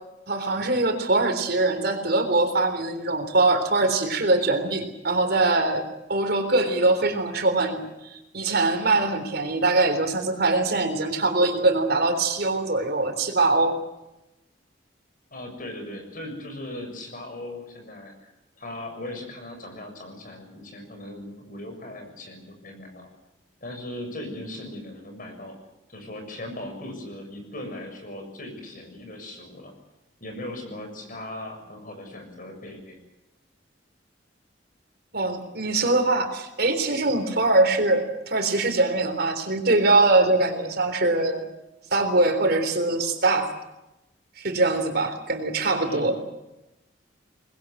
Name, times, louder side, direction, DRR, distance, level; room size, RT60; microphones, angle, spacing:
voice 1, 0.3-5.8 6.1-13.8 35.1-41.5 41.9-43.5 44.4-46.2, right 2 dB, 55° right, 6 dB, 3.6 m, -22 dB
voice 2, 15.3-18.3 18.6-23.1 23.6-25.6 25.9-29.7 30.2-33.0 45.8-46.1, left 1 dB, 45° left, 5 dB, 6.8 m, -38 dB
24.5 x 21.0 x 7.7 m, 0.95 s
head